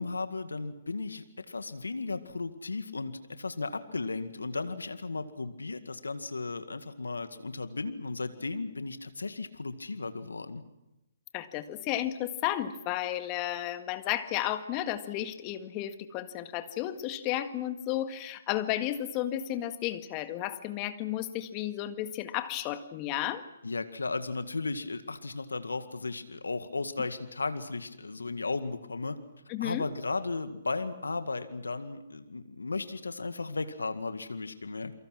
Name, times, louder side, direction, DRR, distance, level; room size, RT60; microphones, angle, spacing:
voice 1, 0.0-10.6 23.6-29.2 29.6-34.9, left 3 dB, 90° left, 10 dB, 1.9 m, -35 dB
voice 2, 11.3-23.4 27.0-27.1 29.5-29.9, left 13 dB, 30° left, 9 dB, 1.8 m, -33 dB
29.0 x 23.5 x 6.2 m, 0.92 s
hypercardioid pair, 135°, 0 cm